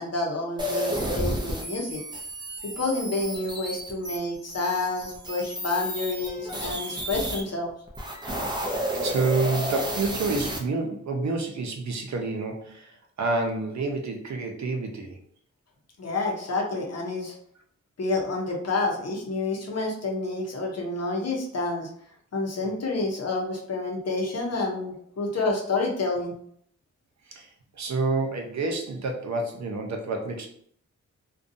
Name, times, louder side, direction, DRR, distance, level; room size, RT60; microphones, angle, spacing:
voice 1, 0.0-2.0 2.6-7.7 16.0-17.3 18.0-21.9 22.3-26.3, left 2 dB, 60° left, 0 dB, 0.7 m, -29 dB
sound 1, 0.6-7.4 7.9-10.6, equal, 15° right, 0.5 m, -31 dB
voice 2, 9.0-12.9 13.2-15.2 27.3-27.5 27.8-30.5, right 3 dB, 65° right, 2 dB, 0.6 m, -28 dB
2.6 x 2.2 x 2.5 m, 0.64 s
wide cardioid pair, 110°, 30 cm